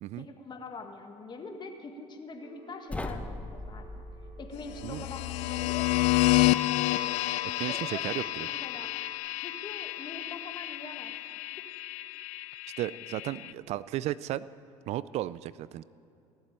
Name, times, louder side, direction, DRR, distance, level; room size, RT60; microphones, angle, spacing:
voice 1, 0.1-4.0 4.4-6.1 7.7-9.0 9.4-11.1, left 3 dB, 35° left, 4 dB, 1.8 m, -44 dB
Telephone, 2.4-9.2, right 4 dB, 85° right, 1.1 m, -55 dB
sound 1, 2.9-6.0, left 1 dB, 10° left, 0.9 m, -41 dB
sound 2, 4.7-13.5, left 18 dB, 75° left, 0.4 m, -30 dB
voice 2, 7.6-8.5 12.8-14.4 14.9-15.8, right 14 dB, 60° right, 18 dB, 0.4 m, -34 dB
17.5 x 7.5 x 8.8 m, 2.8 s
supercardioid pair, 90°, 13 cm